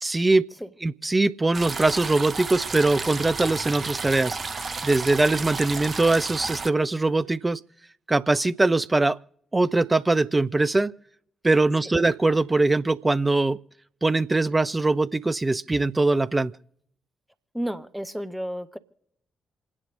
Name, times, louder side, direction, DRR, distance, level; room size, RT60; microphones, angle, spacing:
voice 1, 0.0-0.5 0.8-4.4 4.8-7.6 8.1-9.2 9.5-10.9 11.4-13.6 14.0-16.5, right 2 dB, 20° right, 0.5 m, -22 dB
sound 1, 1.5-6.7, right 4 dB, 40° right, 0.9 m, -32 dB
voice 2, 17.5-18.8, equal, 5° right, 1.1 m, -31 dB
27.5 x 9.8 x 3.8 m
figure-of-eight pair, 40°, 0 cm